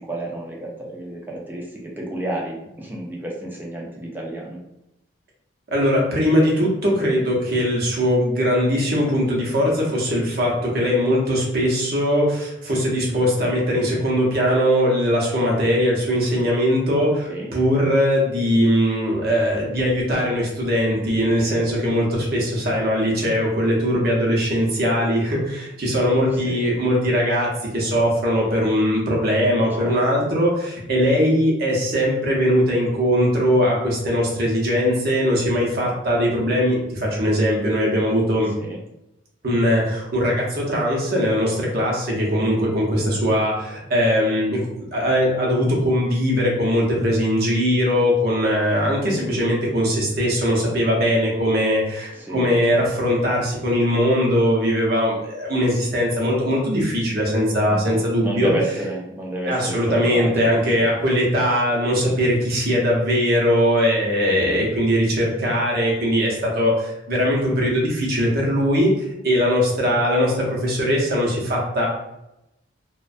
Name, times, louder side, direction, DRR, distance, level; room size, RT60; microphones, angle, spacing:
voice 1, 0.0-4.6 17.3-17.5 26.3-26.7 29.7-30.0 38.6-38.8 43.0-43.2 52.1-52.8 57.7-61.0 64.2-64.6, right 1 dB, 10° right, -3 dB, 0.4 m, -31 dB
voice 2, 5.7-38.5 39.4-58.5 59.5-68.9 69.2-71.9, equal, 50° right, -3 dB, 0.7 m, -20 dB
2.4 x 2.2 x 2.5 m, 0.87 s
head